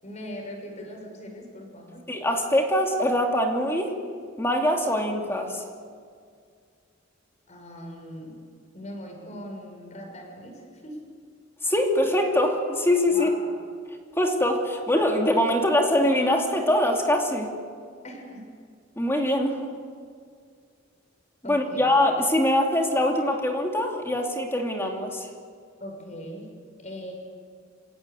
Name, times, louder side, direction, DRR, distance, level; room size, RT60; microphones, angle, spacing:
voice 1, 0.0-2.0 7.5-8.4 8.7-11.0 13.1-13.5 18.0-18.4 21.4-21.9 25.8-26.5 26.8-27.1, equal, 35° left, 2 dB, 6.2 m, -40 dB
voice 2, 2.1-3.9 4.4-5.6 11.6-13.3 14.2-17.5 19.0-19.6 21.4-25.3, left 1 dB, 15° left, 1 dB, 2.8 m, -23 dB
29.0 x 17.0 x 8.4 m, 2.1 s
head